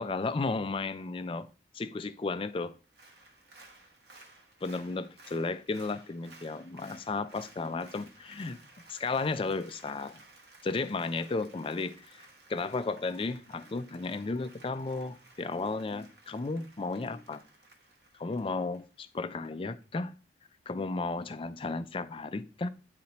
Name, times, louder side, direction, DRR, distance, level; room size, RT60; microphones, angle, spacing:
voice 1, 0.0-1.5 1.7-2.7 4.6-8.6 8.9-10.2 10.6-12.2 12.5-17.4 18.2-20.1 20.7-22.7, left 3 dB, 30° left, 0.4 m, -34 dB
Applause, 2.8-19.5 19.8-19.9, right 2 dB, 60° right, 1.1 m, -57 dB
9.2 x 4.1 x 2.9 m
head